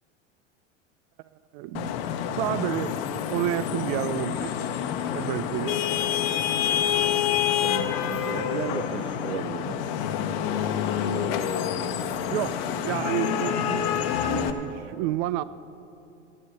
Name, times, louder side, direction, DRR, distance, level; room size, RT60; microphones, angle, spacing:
voice 1, 1.5-1.9 2.4-2.9 3.3-4.6 5.1-5.8 12.3-15.4, right 14 dB, 45° right, 16 dB, 0.4 m, -30 dB
Vehicle horn car horn honking / Traffic noise roadway noise, 1.7-14.5, left 9 dB, 55° left, 1.0 m, -27 dB
voice 2, 7.6-9.8, right 7 dB, 80° right, 12 dB, 0.9 m, -35 dB
13.5 x 8.7 x 7.8 m, 2.7 s
hypercardioid pair, 85°, 36 cm